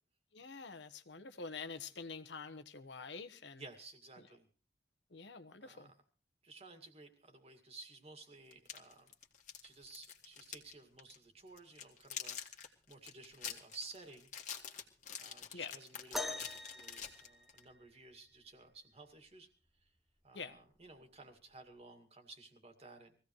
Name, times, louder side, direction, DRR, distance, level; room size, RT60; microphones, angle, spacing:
voice 1, 0.3-3.6 5.1-5.9 15.5-15.7 20.3-20.6, left 4 dB, 85° left, 9 dB, 1.2 m, -47 dB
voice 2, 3.6-4.5 5.6-5.9 6.4-9.1 9.6-14.3 15.2-19.5 19.8-19.9 20.2-23.2, right 3 dB, 35° right, 6 dB, 2.2 m, -55 dB
sound 1, 8.5-10.7 11.0-11.2 11.6-17.6, left 8 dB, 45° left, 1.8 m, -46 dB
sound 2, 16.1-18.0 19.7-19.8 20.6-20.8 21.7-21.8, left 2 dB, ahead, 0.9 m, -43 dB
22.5 x 16.0 x 3.2 m, 0.37 s
head